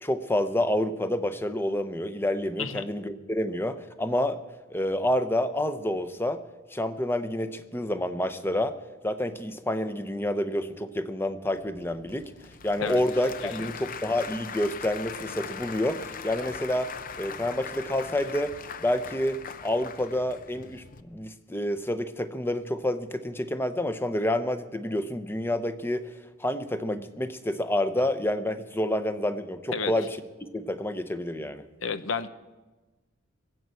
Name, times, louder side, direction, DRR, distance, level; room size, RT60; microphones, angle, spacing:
voice 1, 0.0-4.4 4.7-6.4 6.7-8.8 9.0-12.3 12.6-16.9 17.2-18.5 18.8-26.1 26.4-31.6, left 1 dB, 10° left, 11 dB, 0.8 m, -28 dB
Applause / Crowd, 11.4-21.0, left 6 dB, 45° left, 0.6 m, -41 dB
voice 2, 31.8-32.3, left 5 dB, 80° left, 13 dB, 0.9 m, -31 dB
21.0 x 8.3 x 7.8 m, 1.2 s
head